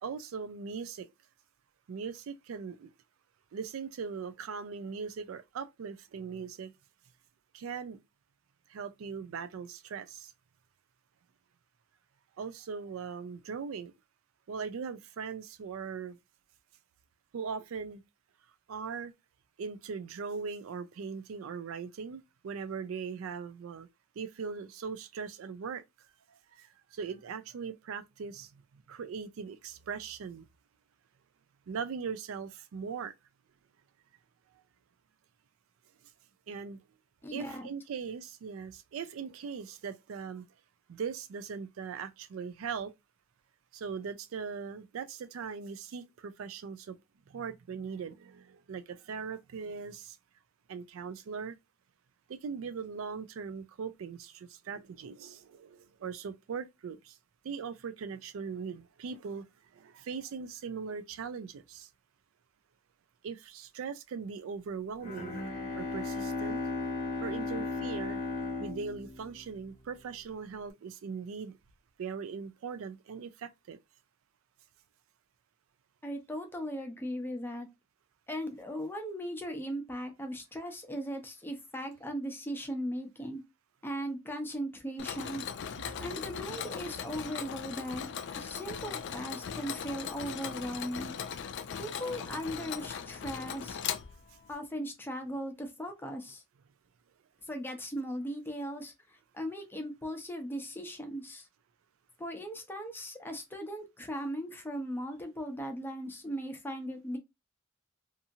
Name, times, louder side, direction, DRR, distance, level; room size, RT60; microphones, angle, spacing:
voice 1, 0.0-1.1 1.9-2.9 3.5-6.7 7.5-8.0 8.7-10.3 12.4-13.9 14.5-16.2 17.3-18.0 18.7-19.1 19.6-23.9 24.2-25.8 26.3-30.5 31.7-33.1 36.5-36.8 37.3-40.5 40.9-42.9 43.7-47.0 47.3-50.2 50.7-51.6 52.3-57.2 57.4-59.5 59.7-61.9 63.2-65.4 65.7-66.6 67.2-68.2 68.6-71.6 72.0-73.8, right 6 dB, 75° right, 0.4 m, -40 dB
voice 2, 37.2-37.7 76.0-77.7 78.3-83.4 83.8-85.4 86.0-91.1 91.8-93.8 94.5-96.4 97.5-101.5 102.2-107.2, equal, 10° left, 0.6 m, -38 dB
Bowed string instrument, 65.0-69.9, left 3 dB, 35° left, 0.9 m, -36 dB
Mechanisms, 85.0-94.5, left 8 dB, 60° left, 0.4 m, -39 dB
2.7 x 2.5 x 2.6 m
head